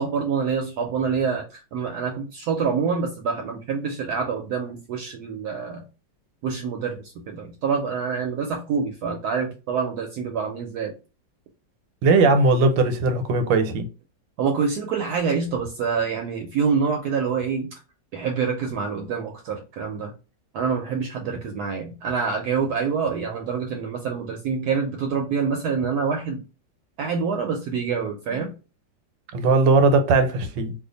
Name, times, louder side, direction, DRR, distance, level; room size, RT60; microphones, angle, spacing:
voice 1, 0.0-5.8 6.4-10.9 14.4-17.7 18.1-20.1 20.5-26.4 27.0-28.5, right 6 dB, 70° right, 1.0 m, -26 dB
voice 2, 12.0-13.9 29.3-30.7, right 3 dB, 90° right, 1.4 m, -19 dB
2.8 x 2.3 x 3.8 m
omnidirectional pair, 1.9 m